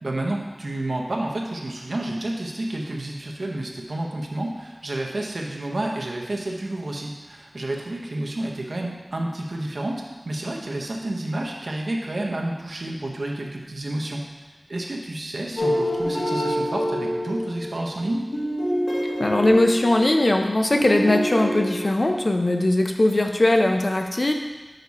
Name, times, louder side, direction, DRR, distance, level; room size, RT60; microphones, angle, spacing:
voice 1, 0.0-14.2 14.7-18.3, right 1 dB, 75° right, 0 dB, 0.9 m, -30 dB
sound 1, 15.6-20.4 20.7-21.9, equal, 85° left, 1.7 m, -26 dB
voice 2, 19.2-24.3, left 1 dB, 50° left, 4 dB, 0.6 m, -20 dB
6.6 x 4.7 x 4.2 m, 1.2 s
wide cardioid pair, 60°, 0 cm